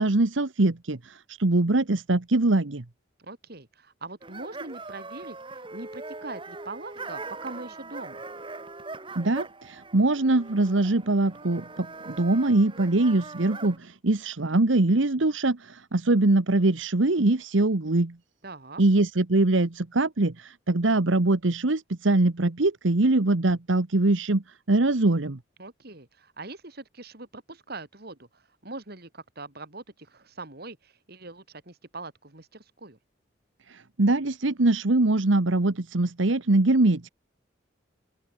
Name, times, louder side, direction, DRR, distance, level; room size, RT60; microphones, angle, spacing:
voice 1, 0.0-2.8 9.1-18.2 18.8-25.4 33.7-37.1, right 2 dB, 80° right, 1.2 m, -23 dB
voice 2, 3.2-8.2 18.4-18.8 25.6-33.0, right 3 dB, 55° right, 2.9 m, -42 dB
sound 1, 4.2-13.8, right 3 dB, 25° right, 2.2 m, -41 dB
open air
head